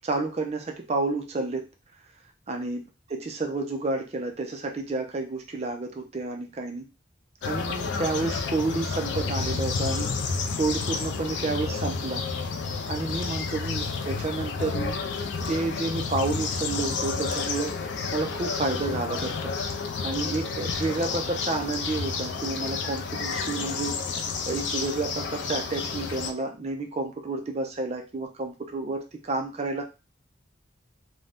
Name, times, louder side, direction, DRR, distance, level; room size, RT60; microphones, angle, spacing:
voice 1, 0.0-1.6 2.5-2.8 3.1-6.9 7.5-10.1 10.6-12.2 12.9-19.5 20.0-24.2 24.5-29.8, right 3 dB, 35° right, 4 dB, 0.4 m, -30 dB
sound 1, 7.4-26.3, left 4 dB, 70° left, 0.4 m, -30 dB
2.5 x 2.1 x 3.4 m, 0.29 s
head